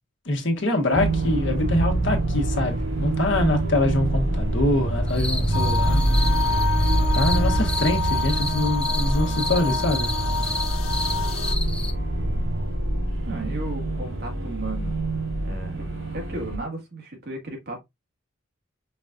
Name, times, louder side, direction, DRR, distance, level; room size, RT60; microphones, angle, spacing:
voice 1, 0.2-6.0 6.4-6.6 7.1-10.2, left 2 dB, 60° left, 1.2 m, -24 dB
sound 1, 0.9-16.6, right 1 dB, 70° right, 1.8 m, -25 dB
sound 2, 5.1-11.9, left 1 dB, 5° left, 0.3 m, -33 dB
sound 3, 5.5-11.5, left 4 dB, 75° left, 0.6 m, -29 dB
voice 2, 13.3-14.9 15.4-17.8, right 2 dB, 50° right, 1.8 m, -34 dB
5.3 x 4.0 x 2.4 m
head